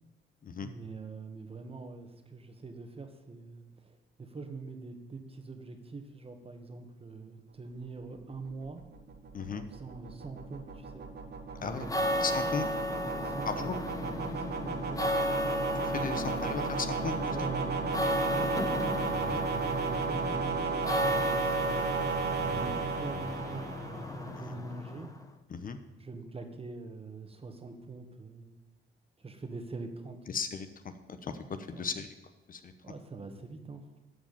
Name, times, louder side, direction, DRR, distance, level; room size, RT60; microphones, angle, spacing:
voice 1, 0.6-8.8 9.5-11.1 11.6-12.1 12.5-12.7 13.0-15.0 17.2-18.4 19.4-25.1 26.0-28.6 29.2-30.2 31.7-31.9 32.8-34.0, right 3 dB, 30° right, 6 dB, 1.7 m, -44 dB
sound 1, 8.1-24.3, right 5 dB, 55° right, 1.6 m, -35 dB
sound 2, 11.7-25.2, left 1 dB, 15° left, 1.2 m, -34 dB
voice 2, 12.2-12.6 13.5-13.7 15.7-17.3 19.2-19.4 25.5-25.8 30.3-30.7 31.1-31.3 31.7-32.1 32.5-32.7, left 5 dB, 45° left, 9 dB, 1.0 m, -36 dB
13.0 x 4.9 x 8.7 m, 1.1 s
cardioid pair, 90°, 20 cm